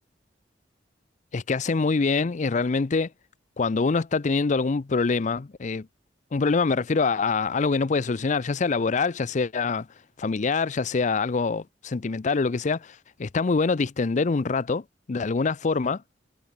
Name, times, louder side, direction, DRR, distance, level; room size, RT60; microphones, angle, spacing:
voice 1, 1.3-3.1 3.6-5.9 6.3-9.9 10.2-16.0, left 4 dB, 45° left, 0.5 m, -25 dB
head